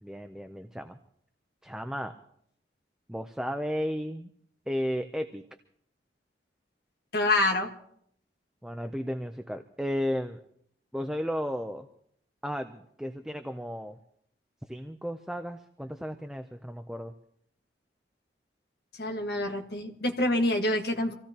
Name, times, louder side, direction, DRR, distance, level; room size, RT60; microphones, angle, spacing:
voice 1, 0.0-1.0 1.6-2.1 3.1-4.3 4.7-5.4 8.6-10.4 10.9-11.9 12.4-14.0 14.7-17.1, equal, 5° right, 7 dB, 0.5 m, -34 dB
voice 2, 7.1-7.7 19.0-21.1, left 1 dB, 60° left, 2 dB, 1.6 m, -26 dB
26.5 x 16.5 x 2.9 m, 0.67 s
head